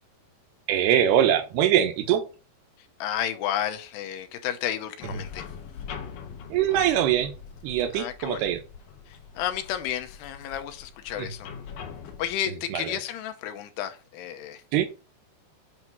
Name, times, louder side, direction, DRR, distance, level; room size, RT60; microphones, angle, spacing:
voice 1, 0.7-2.3 5.1-5.2 6.5-7.3 7.6-8.6 11.2-11.3 12.5-13.0 14.7-14.9, right 10 dB, 80° right, 2.9 m, -23 dB
voice 2, 3.0-5.5 7.9-8.5 9.1-11.5 12.2-14.6, left 10 dB, 85° left, 2.9 m, -32 dB
sound 1, 5.0-12.3, left 7 dB, 65° left, 2.5 m, -42 dB
8.5 x 3.1 x 5.8 m
omnidirectional pair, 4.7 m